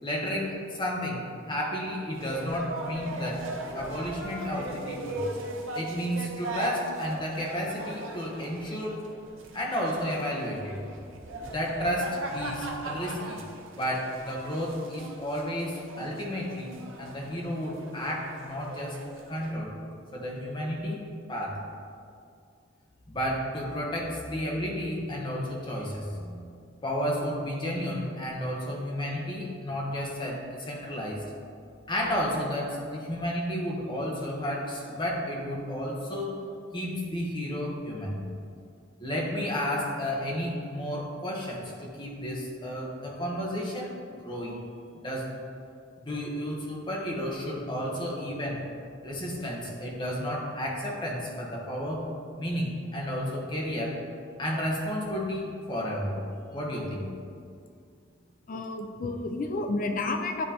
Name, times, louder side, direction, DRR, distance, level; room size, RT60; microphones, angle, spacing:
voice 1, 0.0-3.4 3.7-5.3 5.7-9.1 9.5-10.8 11.4-13.4 13.7-19.0 19.3-19.8 20.1-21.0 21.3-21.6 23.1-26.5 26.8-31.2 31.9-36.4 36.7-38.3 39.0-43.9 44.2-44.6 44.9-45.3 46.0-48.6 49.0-52.1 52.4-54.0 54.4-56.2 56.5-57.1, equal, 25° left, -3 dB, 0.9 m, -32 dB
sound 1, 2.1-19.5, right 1 dB, 75° right, 0.7 m, -39 dB
voice 2, 58.5-60.4, left 2 dB, 40° left, 5 dB, 0.4 m, -30 dB
9.4 x 3.8 x 2.9 m, 2.3 s
head